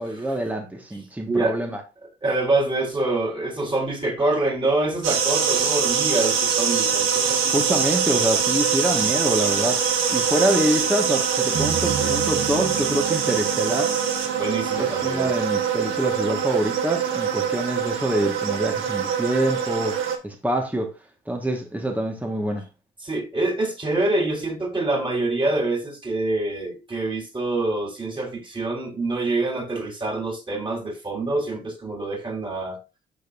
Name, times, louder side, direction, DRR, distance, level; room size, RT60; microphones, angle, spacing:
voice 1, 0.0-1.8 7.5-9.8 10.1-14.0 14.7-20.9 21.3-22.7, right 1 dB, 10° right, 1.5 m, -26 dB
voice 2, 2.2-7.6 14.4-15.3 23.0-32.8, right 2 dB, 25° right, 4.0 m, -25 dB
sound 1, 5.0-20.2, right 7 dB, 90° right, 1.8 m, -23 dB
sound 2, 11.6-15.9, right 9 dB, 60° right, 1.2 m, -33 dB
13.0 x 5.3 x 2.5 m
cardioid pair, 90°, 20 cm